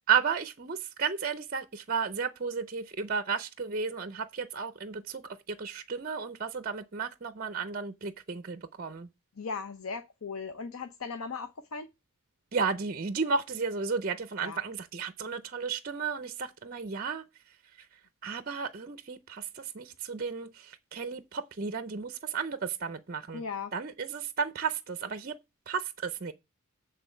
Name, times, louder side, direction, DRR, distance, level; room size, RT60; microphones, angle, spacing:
voice 1, 0.1-9.1 12.5-17.2 18.2-23.4 23.7-25.4 25.7-26.3, right 5 dB, 40° right, 0.5 m, -33 dB
voice 2, 9.4-11.9 14.4-14.6 23.3-23.7, left 5 dB, 75° left, 0.7 m, -37 dB
8.3 x 3.8 x 6.6 m
head